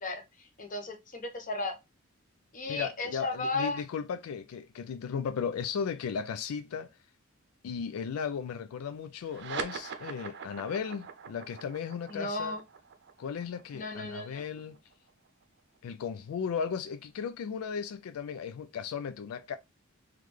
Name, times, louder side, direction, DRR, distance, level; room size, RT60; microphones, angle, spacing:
voice 1, 0.0-1.8 2.5-3.8 12.1-12.6 13.7-14.4, left 2 dB, 40° left, 0.9 m, -35 dB
voice 2, 2.7-6.9 7.6-12.6 13.2-14.8 15.8-19.6, left 6 dB, 85° left, 0.3 m, -36 dB
sound 1, 9.2-16.1, right 6 dB, 55° right, 0.6 m, -43 dB
3.8 x 3.1 x 3.2 m
head